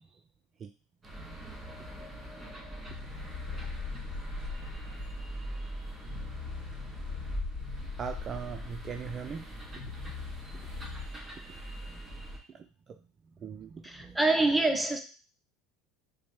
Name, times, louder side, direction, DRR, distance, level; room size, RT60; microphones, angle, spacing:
sound 1, 1.0-12.4, right 1 dB, 20° right, 1.8 m, -42 dB
sound 2, 2.9-11.1, left 5 dB, 60° left, 1.0 m, -41 dB
voice 1, 4.5-5.7 8.0-9.4 11.0-12.5 13.4-14.2, right 6 dB, 35° right, 0.3 m, -42 dB
voice 2, 13.8-15.0, right 2 dB, 5° right, 0.7 m, -26 dB
4.9 x 2.0 x 3.2 m
hypercardioid pair, 95°, 0 cm